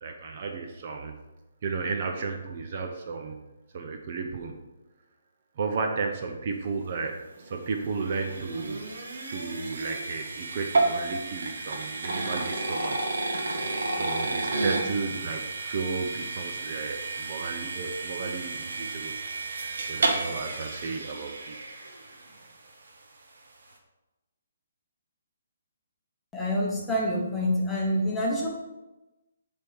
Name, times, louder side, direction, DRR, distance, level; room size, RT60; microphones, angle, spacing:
voice 1, 0.0-1.2 1.6-3.4 3.7-4.6 5.6-8.8 9.3-13.1 13.4-19.1 19.6-21.5, right 4 dB, 35° right, 3 dB, 0.6 m, -33 dB
sound 1, 7.3-22.5, right 2 dB, 70° right, 1.3 m, -32 dB
voice 2, 26.3-28.5, left 1 dB, 5° left, -4 dB, 0.9 m, -27 dB
7.2 x 3.5 x 5.5 m, 1.0 s
hypercardioid pair, 170°, 0 cm